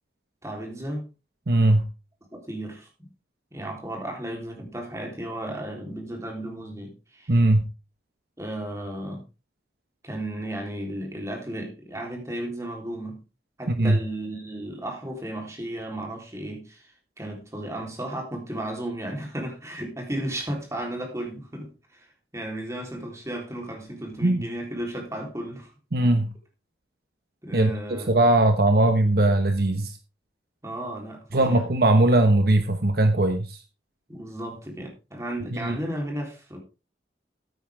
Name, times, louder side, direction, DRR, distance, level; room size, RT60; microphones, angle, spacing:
voice 1, 0.4-1.1 2.3-2.9 3.5-7.4 8.4-9.2 10.0-13.2 13.6-16.9 17.2-22.1 22.3-25.7 27.4-28.1 30.6-31.6 34.1-36.6, right 1 dB, 15° right, 3.7 m, -34 dB
voice 2, 1.5-1.8 7.3-7.7 13.7-14.0 24.2-24.5 25.9-26.3 27.5-30.0 31.3-33.6 35.5-35.8, right 1 dB, 55° right, 1.1 m, -20 dB
14.0 x 9.2 x 3.6 m
head